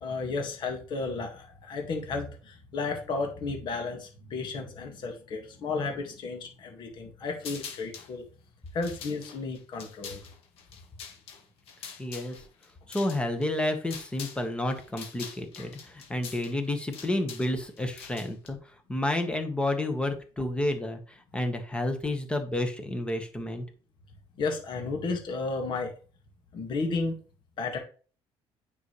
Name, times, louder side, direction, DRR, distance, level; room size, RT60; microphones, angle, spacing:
voice 1, 0.0-8.2 8.7-10.2 24.4-25.9 26.5-27.2 27.6-27.8, left 3 dB, 45° left, 3 dB, 1.8 m, -33 dB
sound 1, 7.4-8.1 8.7-14.4 14.7-18.5, left 6 dB, 65° left, 1.9 m, -44 dB
voice 2, 12.0-12.4 12.9-18.6 18.9-23.6, left 1 dB, 10° left, 6 dB, 1.3 m, -30 dB
9.3 x 5.5 x 3.2 m, 0.38 s
cardioid pair, 150°, 11 cm